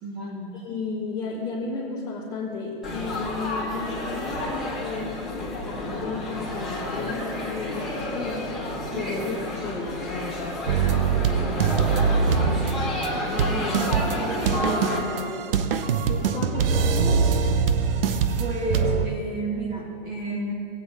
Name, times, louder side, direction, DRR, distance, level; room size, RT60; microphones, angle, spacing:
voice 1, 0.0-0.7 8.9-9.1 13.6-14.4 18.4-20.5, right 1 dB, 30° right, -1 dB, 2.2 m, -32 dB
voice 2, 0.5-8.5 8.9-10.3 10.9-14.0 14.5-17.3, left 3 dB, 20° left, -9 dB, 2.3 m, -34 dB
Laughter / Chatter / Crowd, 2.8-15.0, left 1 dB, ahead, 2.7 m, -30 dB
sound 1, 10.7-19.1, right 6 dB, 70° right, 0.8 m, -23 dB
17.0 x 8.8 x 3.1 m, 2.4 s
hypercardioid pair, 135°, 29 cm